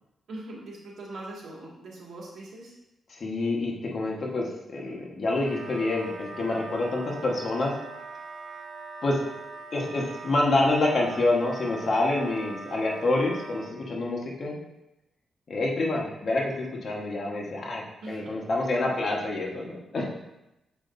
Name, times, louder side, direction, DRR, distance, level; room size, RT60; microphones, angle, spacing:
voice 1, 0.3-2.7 18.0-18.3, right 2 dB, 65° right, -4 dB, 1.9 m, -41 dB
voice 2, 3.1-4.5 4.7-7.7 9.0-9.2 9.7-14.6 15.5-20.1, left 2 dB, 45° left, -1 dB, 1.2 m, -27 dB
Wind instrument woodwind instrument, 5.4-13.8, right 3 dB, 45° right, 0.7 m, -42 dB
7.4 x 5.0 x 2.6 m, 0.91 s
cardioid pair, 110°, 0 cm